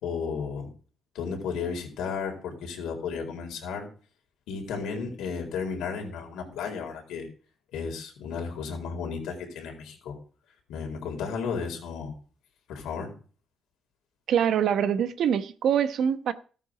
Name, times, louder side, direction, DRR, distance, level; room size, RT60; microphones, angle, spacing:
voice 1, 0.0-0.7 1.1-3.9 4.5-7.3 7.7-10.1 10.7-12.1 12.7-13.1, left 5 dB, 90° left, 4.3 m, -33 dB
voice 2, 14.3-16.3, right 8 dB, 70° right, 1.1 m, -24 dB
14.0 x 9.2 x 5.1 m
cardioid pair, 90°, 0 cm